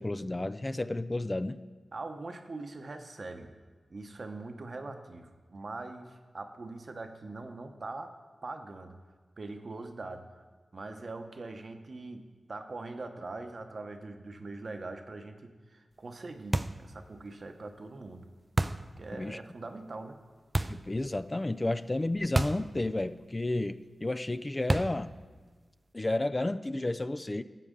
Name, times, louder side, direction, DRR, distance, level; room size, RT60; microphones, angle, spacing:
voice 1, 0.0-1.6 19.2-19.4 20.7-25.1 25.9-27.4, left 2 dB, 30° left, 12 dB, 0.4 m, -31 dB
voice 2, 1.9-3.5 3.9-8.1 8.4-9.0 9.4-10.2 10.7-12.2 12.5-18.3 19.0-20.2, right 3 dB, 60° right, 6 dB, 0.9 m, -42 dB
sound 1, 16.5-16.9 18.6-18.9 20.5-20.9 22.4-22.7 23.0-23.1 24.7-25.1, right 2 dB, 35° right, 0.4 m, -29 dB
13.0 x 7.6 x 3.7 m, 1.4 s
cardioid pair, 45°, 0 cm